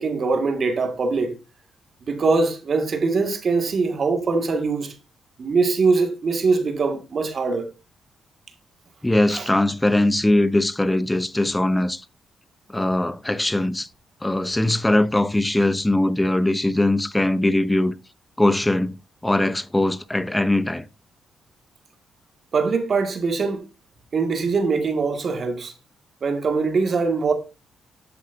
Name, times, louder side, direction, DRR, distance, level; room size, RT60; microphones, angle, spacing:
voice 1, 0.0-1.4 2.0-5.0 5.4-7.7 9.3-9.5 22.5-23.7 24.1-25.7 26.2-27.3, right 4 dB, 50° right, 2.1 m, -22 dB
voice 2, 9.0-12.0 12.7-13.9 14.2-17.9 18.4-19.0 19.2-20.9, left 1 dB, 10° left, 0.8 m, -21 dB
11.5 x 8.1 x 2.7 m
cardioid pair, 85°, 0 cm